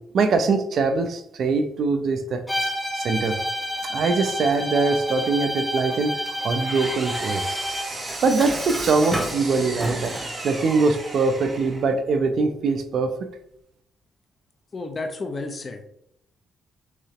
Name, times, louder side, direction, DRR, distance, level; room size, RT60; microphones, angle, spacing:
voice 1, 0.1-2.4 2.9-3.4 3.8-6.2 6.4-7.4 8.2-10.2 10.4-13.1, right 4 dB, 60° right, 7 dB, 0.6 m, -22 dB
Bowed string instrument, 2.5-7.9, equal, 5° left, 1.7 m, -29 dB
Engine, 6.3-12.0, right 2 dB, 30° right, 1.8 m, -34 dB
Dishes pots and pans, 7.9-10.4, right 1 dB, 10° right, 0.8 m, -32 dB
voice 2, 14.7-15.8, left 3 dB, 35° left, 6 dB, 0.8 m, -31 dB
6.1 x 2.9 x 2.9 m, 0.76 s
cardioid pair, 90°, 0 cm